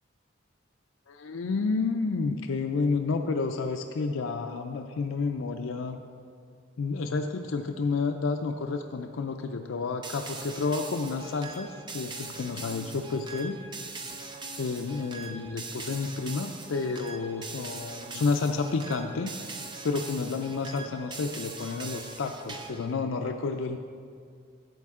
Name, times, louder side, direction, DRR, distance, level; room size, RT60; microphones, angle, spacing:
voice 1, 1.1-6.0 6.8-13.6 14.6-19.3 19.8-23.8, left 4 dB, 85° left, 5 dB, 0.4 m, -30 dB
sound 1, 10.0-22.9, right 3 dB, 25° right, 0.6 m, -41 dB
12.0 x 8.5 x 3.6 m, 2.2 s
head